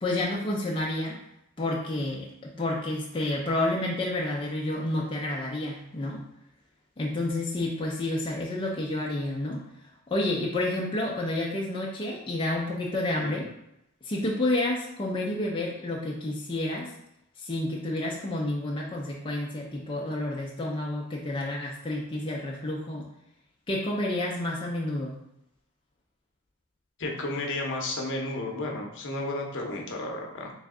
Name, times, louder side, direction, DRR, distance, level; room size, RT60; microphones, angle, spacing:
voice 1, 0.0-1.2 1.6-6.2 7.0-9.6 10.1-13.5 14.0-16.9 17.4-23.0 23.7-25.1, left 1 dB, 25° left, -3 dB, 0.5 m, -30 dB
voice 2, 27.0-30.5, left 2 dB, 55° left, 1 dB, 0.7 m, -32 dB
3.4 x 3.1 x 3.6 m, 0.81 s
head